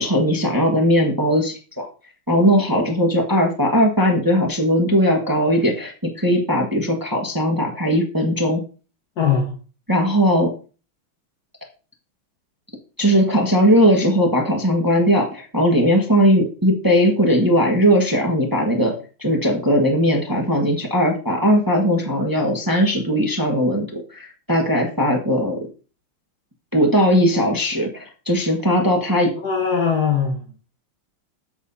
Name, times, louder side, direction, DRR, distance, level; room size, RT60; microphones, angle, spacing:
voice 1, 0.0-1.9 2.3-8.6 9.9-10.5 13.0-18.9 19.2-25.6 26.7-29.3, equal, 10° right, 1 dB, 1.1 m, -18 dB
voice 2, 9.2-9.6 29.3-30.4, left 6 dB, 50° left, 0 dB, 1.7 m, -20 dB
8.3 x 7.8 x 2.7 m, 0.35 s
omnidirectional pair, 2.4 m